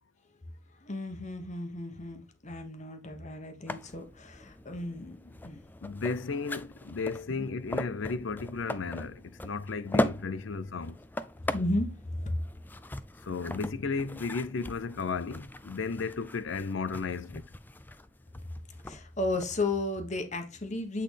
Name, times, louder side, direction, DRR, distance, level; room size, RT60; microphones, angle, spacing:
voice 1, 0.8-5.6 11.4-12.4 18.8-21.0, left 2 dB, 35° left, 1.1 m, -34 dB
sound 1, 3.7-19.7, left 1 dB, 10° left, 0.3 m, -39 dB
voice 2, 5.8-11.0 13.2-17.4, left 4 dB, 70° left, 0.5 m, -34 dB
8.4 x 3.9 x 3.3 m
head